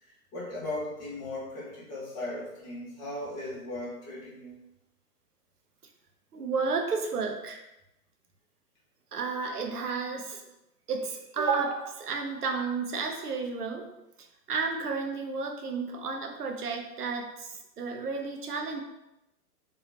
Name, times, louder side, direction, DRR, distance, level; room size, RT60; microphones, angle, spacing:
voice 1, 0.0-4.6, left 1 dB, 25° left, -8 dB, 1.2 m, -37 dB
voice 2, 6.3-7.6 9.1-10.4 10.9-13.9 14.5-18.8, right 4 dB, 75° right, 3 dB, 0.6 m, -32 dB
2.9 x 2.4 x 2.7 m, 0.90 s
figure-of-eight pair, 115°, 46 cm